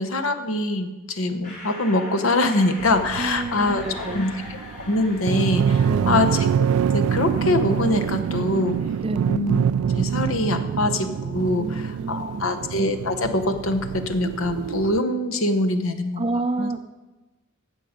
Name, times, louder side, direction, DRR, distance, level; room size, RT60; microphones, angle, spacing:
voice 1, 0.0-4.3 4.8-8.8 9.3-9.6 9.9-16.2 16.6-16.7, left 2 dB, 70° left, 8 dB, 1.0 m, -24 dB
sound 1, 1.4-7.0, left 2 dB, 35° left, 3.3 m, -40 dB
sound 2, 2.8-15.0, right 8 dB, 85° right, 0.3 m, -25 dB
voice 2, 3.2-4.3 5.8-6.3 9.0-9.3 11.6-12.6 16.2-16.8, right 2 dB, 25° right, 10 dB, 0.5 m, -29 dB
17.0 x 6.4 x 5.2 m, 1.2 s
head